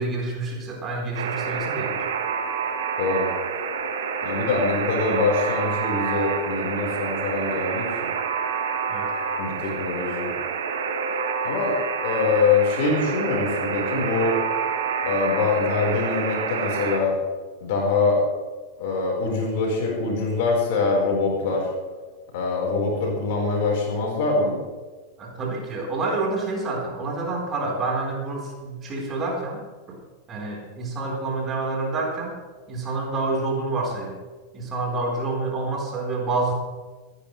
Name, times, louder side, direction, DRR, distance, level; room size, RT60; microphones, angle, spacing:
voice 1, 0.0-2.0 8.9-9.1 25.2-29.6 29.9-30.0 30.3-32.3 32.7-34.2 34.5-36.5, right 3 dB, 25° right, -2 dB, 4.5 m, -28 dB
Alarm, 1.1-17.0, right 6 dB, 60° right, 1.6 m, -28 dB
voice 2, 3.0-3.3 4.2-8.1 9.4-10.3 11.4-14.4 15.0-17.2 17.6-18.2 18.8-21.7 22.3-24.6, left 4 dB, 50° left, -1 dB, 5.0 m, -24 dB
27.0 x 10.5 x 3.4 m, 1.4 s
figure-of-eight pair, 90°, 0 cm